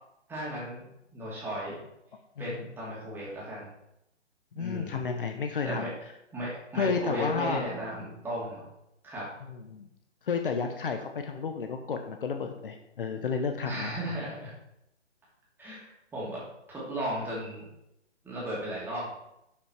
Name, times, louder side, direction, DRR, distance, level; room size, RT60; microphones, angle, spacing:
voice 1, 0.3-0.9 1.1-1.8 2.4-3.7 4.5-5.1 5.6-5.9 6.3-8.7 9.0-9.3 13.6-14.5 15.6-15.9 16.1-16.4 16.7-17.7 18.2-19.1, equal, 5° right, -7 dB, 2.7 m, -35 dB
voice 2, 2.4-2.7 4.6-5.9 6.7-7.7 9.5-9.9 10.2-13.9, left 5 dB, 50° left, 5 dB, 1.0 m, -31 dB
11.5 x 5.6 x 4.5 m, 0.83 s
figure-of-eight pair, 145°, 35 cm